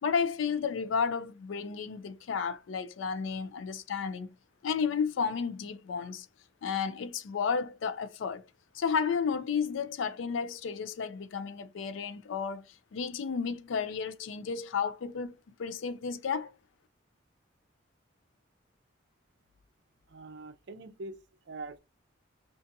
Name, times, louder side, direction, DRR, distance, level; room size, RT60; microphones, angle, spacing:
voice 1, 0.0-4.3 4.6-6.3 6.6-8.5 8.7-16.5, left 6 dB, 75° left, 0.4 m, -32 dB
voice 2, 20.1-21.2 21.5-21.8, right 2 dB, 60° right, 0.4 m, -43 dB
2.5 x 2.5 x 2.5 m
head